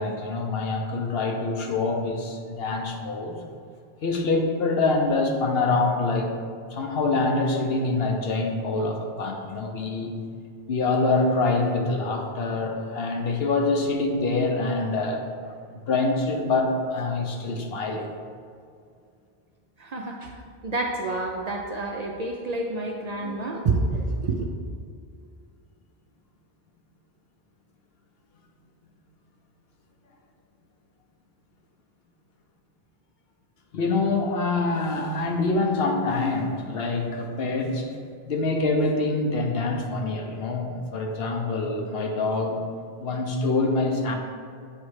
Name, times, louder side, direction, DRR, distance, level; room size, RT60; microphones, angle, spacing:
voice 1, 0.0-3.3 4.0-6.3 6.7-10.1 10.7-15.2 15.5-18.1 33.7-37.9 38.3-42.6 43.0-44.2, left 3 dB, 70° left, 3 dB, 1.0 m, -25 dB
voice 2, 19.8-20.3 20.6-24.5, right 3 dB, 55° right, 1 dB, 0.5 m, -28 dB
8.5 x 3.1 x 4.7 m, 2.3 s
omnidirectional pair, 1.0 m